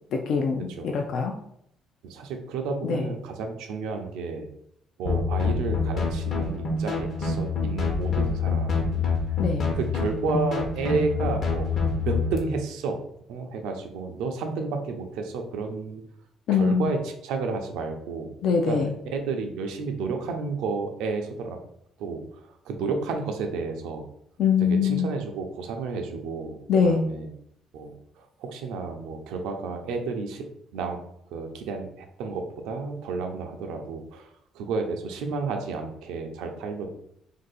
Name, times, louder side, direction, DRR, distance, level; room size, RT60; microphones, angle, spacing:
voice 1, 0.1-1.4 2.8-3.0 9.4-9.7 16.5-16.8 18.4-18.9 24.4-25.1 26.7-27.1, left 6 dB, 70° left, 3 dB, 0.4 m, -23 dB
voice 2, 2.1-4.5 5.0-9.1 9.8-13.0 13.3-16.0 16.5-18.4 18.7-21.6 22.0-24.1 24.6-27.3 27.7-30.4 30.7-31.0 31.3-36.9, right 4 dB, 85° right, 4 dB, 0.5 m, -31 dB
sound 1, 5.1-12.4, left 4 dB, 50° left, 0.8 m, -26 dB
2.6 x 2.6 x 4.0 m, 0.72 s
cardioid pair, 110°, 0 cm